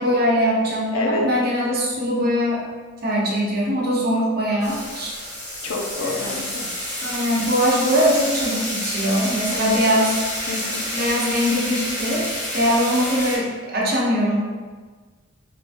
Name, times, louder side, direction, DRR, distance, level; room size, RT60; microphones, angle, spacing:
voice 1, 0.0-2.6 3.0-5.1 6.0-6.3 7.0-10.2 10.9-12.3 12.5-14.4, equal, 45° right, -5 dB, 0.8 m, -21 dB
voice 2, 0.9-1.3 5.6-6.7 9.5-9.9 10.5-10.8, left 2 dB, 70° left, -1 dB, 0.5 m, -28 dB
sound 1, 4.6-13.4, left 1 dB, 30° left, 1.4 m, -29 dB
3.5 x 2.9 x 2.5 m, 1.4 s
head